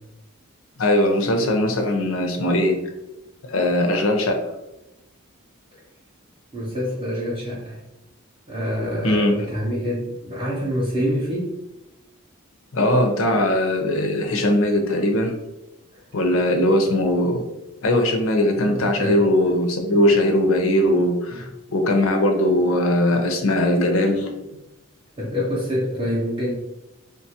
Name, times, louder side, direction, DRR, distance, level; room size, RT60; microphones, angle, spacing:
voice 1, 0.8-2.8 3.4-4.4 9.0-9.4 12.7-15.3 16.1-17.4 17.8-24.5, left 1 dB, 70° left, 4 dB, 0.5 m, -20 dB
voice 2, 6.5-7.8 8.5-11.5 15.9-16.0 18.7-19.2 21.3-21.4 25.2-26.5, equal, 25° right, -6 dB, 0.5 m, -26 dB
3.0 x 2.2 x 2.7 m, 0.91 s
head